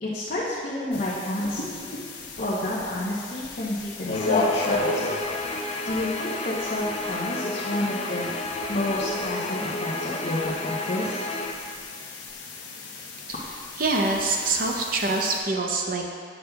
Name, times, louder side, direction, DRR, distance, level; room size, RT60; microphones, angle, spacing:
voice 1, 0.0-1.6 2.4-5.0 5.8-8.3 8.7-11.2, left 1 dB, 50° left, -9 dB, 1.0 m, -29 dB
sound 1, 0.9-15.4, left 2 dB, 85° left, 0.9 m, -34 dB
Guitar, 4.1-11.5, left 2 dB, 35° left, 0.5 m, -31 dB
voice 2, 13.8-16.0, right 3 dB, 50° right, 1 dB, 0.7 m, -25 dB
7.9 x 7.4 x 2.3 m, 2.2 s
head